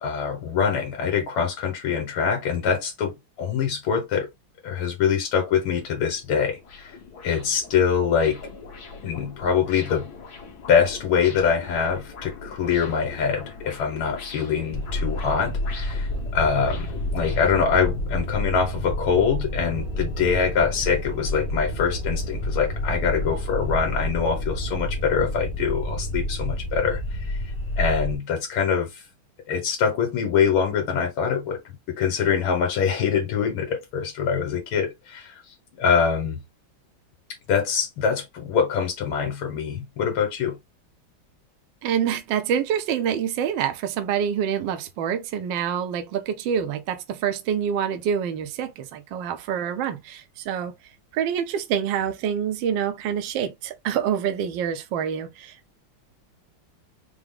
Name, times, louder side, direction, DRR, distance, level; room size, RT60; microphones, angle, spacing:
voice 1, 0.0-4.3 4.6-6.9 7.2-8.4 9.0-10.1 10.7-16.9 17.1-27.0 27.3-27.4 27.8-29.0 29.5-31.6 31.9-36.4 37.5-40.6, left 6 dB, 85° left, 1.8 m, -24 dB
sound 1, 5.4-17.8, left 4 dB, 55° left, 1.5 m, -42 dB
sound 2, 14.7-28.2, left 1 dB, 10° left, 0.7 m, -29 dB
voice 2, 41.8-50.7 51.1-55.8, right 8 dB, 75° right, 1.3 m, -26 dB
4.7 x 2.0 x 3.5 m
omnidirectional pair, 2.2 m